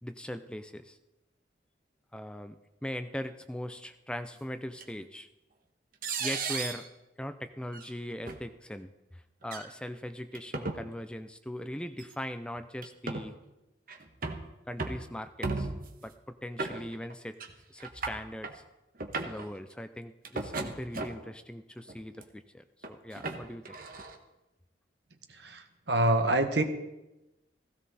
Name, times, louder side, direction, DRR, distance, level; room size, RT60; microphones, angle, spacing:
voice 1, 0.0-1.0 2.1-2.5 2.8-5.3 6.2-6.9 7.2-13.4 14.7-15.7 16.0-17.4 17.7-18.6 19.3-23.8, equal, 5° left, 10 dB, 0.4 m, -40 dB
sound 1, 4.8-4.9 6.0-6.9 7.7-7.9 8.3-8.4 9.4-9.7 10.3-10.8 12.0-12.1 12.8-13.3 13.9-14.4 14.8-15.1 15.4-15.9 16.6-17.1 17.4-17.5 17.8-18.5 19.0-19.5 20.2-21.3 21.9-22.2 22.8-24.2, right 3 dB, 50° right, 1.3 m, -35 dB
voice 2, 25.3-26.6, right 1 dB, 70° right, 6 dB, 1.5 m, -26 dB
16.5 x 16.0 x 4.2 m, 0.97 s
head